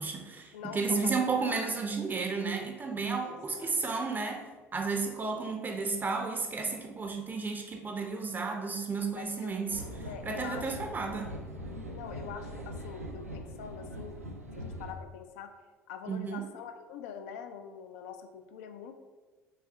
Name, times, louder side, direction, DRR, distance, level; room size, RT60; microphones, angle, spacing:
voice 1, 0.0-4.5 4.7-9.8 10.2-11.3 16.1-16.5, right 4 dB, 25° right, 3 dB, 0.5 m, -32 dB
voice 2, 0.5-1.7 3.2-3.8 5.3-5.5 9.2-9.5 10.1-11.3 11.9-14.2 14.5-15.5 15.9-19.0, left 7 dB, 65° left, 7 dB, 0.4 m, -44 dB
sound 1, 9.7-14.9, equal, 85° right, 0.4 m, -42 dB
5.5 x 3.4 x 2.2 m, 1.3 s
figure-of-eight pair, 60°, 8 cm